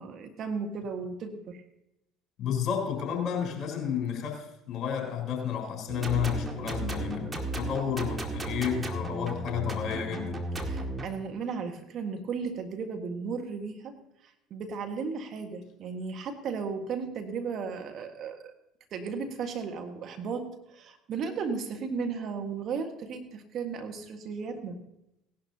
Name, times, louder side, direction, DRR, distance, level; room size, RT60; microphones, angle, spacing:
voice 1, 0.0-1.6 10.6-14.0 14.5-18.5 18.9-24.8, right 5 dB, 55° right, 5 dB, 1.5 m, -35 dB
voice 2, 2.4-10.4, left 8 dB, 50° left, 1 dB, 3.7 m, -31 dB
sound 1, 5.9-11.1, right 2 dB, 20° right, 2.0 m, -34 dB
17.5 x 11.5 x 2.8 m, 0.84 s
hypercardioid pair, 65°, 0 cm